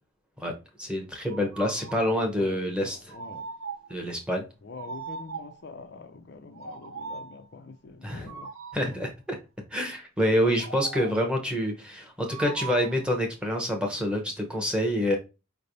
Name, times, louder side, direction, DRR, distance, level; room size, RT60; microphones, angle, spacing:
voice 1, 0.8-3.1 3.9-4.4 8.0-8.3 8.7-9.4 9.7-15.2, equal, 5° right, 1.0 m, -27 dB
sound 1, 1.3-2.1 3.1-4.0 4.8-5.7 6.5-7.4 8.3-9.0 10.6-11.3 12.3-13.0, right 4 dB, 75° right, 0.7 m, -39 dB
voice 2, 1.9-3.5 4.6-8.5 10.3-10.8, left 4 dB, 50° left, 0.5 m, -45 dB
5.1 x 3.3 x 2.6 m
head